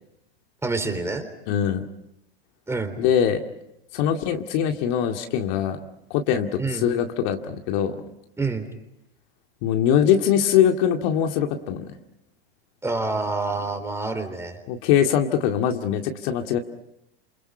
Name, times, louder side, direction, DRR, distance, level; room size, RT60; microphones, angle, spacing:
voice 1, 0.6-1.3 2.7-3.0 6.6-6.9 8.4-8.7 12.8-14.6, right 3 dB, 10° right, 7 dB, 3.7 m, -27 dB
voice 2, 1.5-1.9 3.0-3.4 3.9-5.8 6.1-8.0 9.6-11.9 14.7-16.6, left 9 dB, 50° left, 4 dB, 2.2 m, -22 dB
29.5 x 28.0 x 5.7 m, 0.83 s
hypercardioid pair, 115°, 30 cm